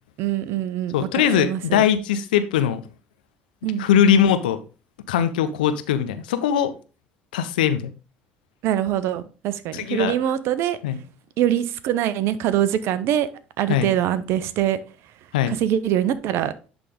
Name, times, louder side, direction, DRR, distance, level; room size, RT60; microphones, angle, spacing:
voice 1, 0.2-1.8 3.6-3.9 8.6-10.8 11.4-13.3 13.6-14.8 15.5-16.5, right 11 dB, 65° right, 0.7 m, -23 dB
voice 2, 0.9-2.8 3.8-4.6 5.1-6.7 7.3-7.9 9.7-10.1 10.8-11.0 13.7-13.9 15.3-15.5, left 9 dB, 85° left, 0.6 m, -20 dB
10.5 x 3.5 x 3.6 m
hypercardioid pair, 60°, 5 cm